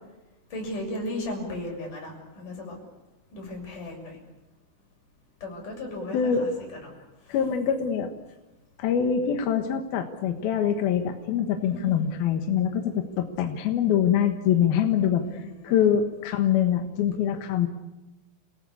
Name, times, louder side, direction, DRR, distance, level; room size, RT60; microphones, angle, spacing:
voice 1, 0.5-2.8 3.3-4.2 5.4-6.5 6.8-6.9 7.2-7.4 11.6-12.1 15.2-15.9, left 1 dB, 40° left, 0 dB, 8.4 m, -36 dB
voice 2, 6.1-6.4 7.3-8.1 8.8-17.7, left 8 dB, 65° left, 5 dB, 2.6 m, -24 dB
30.0 x 18.5 x 8.5 m, 1.1 s
omnidirectional pair, 5.8 m